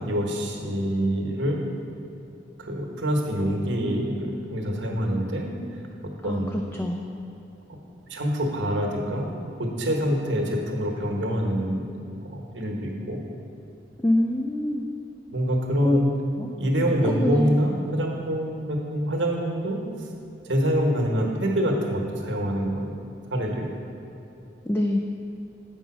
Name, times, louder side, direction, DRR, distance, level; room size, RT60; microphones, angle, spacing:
voice 1, 0.0-1.6 2.6-5.5 6.0-6.5 8.1-9.3 9.6-11.8 12.2-13.2 15.3-16.1 16.6-19.8 20.5-22.9 23.3-23.7, equal, 90° right, 0 dB, 1.3 m, -25 dB
voice 2, 6.2-7.2 14.0-14.9 15.8-16.0 16.4-16.5 17.0-17.6 24.7-25.0, left 1 dB, 10° left, 2 dB, 0.3 m, -25 dB
8.0 x 5.4 x 6.1 m, 2.9 s
head